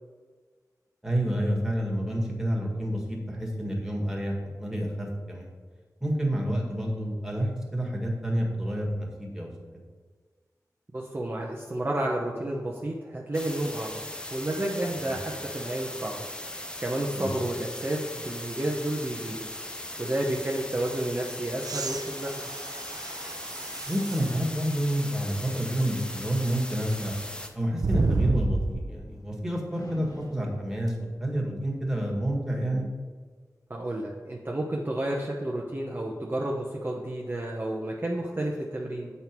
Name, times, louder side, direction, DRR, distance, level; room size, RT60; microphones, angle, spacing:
voice 1, 1.0-5.5 6.0-9.5 15.1-15.2 17.1-17.3 23.9-27.1 27.5-32.9, right 1 dB, 5° right, -1 dB, 1.8 m, -29 dB
voice 2, 10.9-14.0 14.3-16.3 16.8-19.5 20.0-22.5 33.7-39.1, right 1 dB, 35° right, -2 dB, 0.9 m, -31 dB
sound 1, 13.3-27.5, left 1 dB, 15° left, 0.8 m, -39 dB
sound 2, 21.6-24.3 25.0-25.1 27.8-29.0 30.9-31.0, right 3 dB, 75° right, 0.6 m, -30 dB
sound 3, 28.8-29.4 29.7-32.4, left 1 dB, 65° left, 1.1 m, -51 dB
7.8 x 5.5 x 4.6 m, 1.5 s
wide cardioid pair, 70°, 7 cm